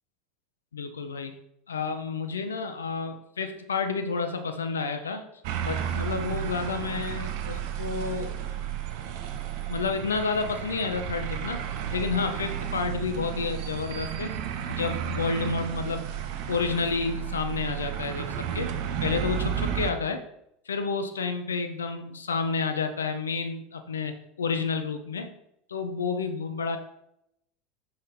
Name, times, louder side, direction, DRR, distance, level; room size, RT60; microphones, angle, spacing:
voice 1, 0.7-1.3 1.7-5.2 5.6-8.4 9.7-11.6 11.9-14.3 14.7-16.1 16.5-18.7 19.0-20.2 20.7-24.1 24.4-25.3 25.7-26.8, left 4 dB, 75° left, 7 dB, 0.6 m, -30 dB
sound 1, 5.4-19.9, right 9 dB, 55° right, 0.7 m, -32 dB
6.0 x 5.2 x 3.9 m, 0.79 s
figure-of-eight pair, 75°, 0 cm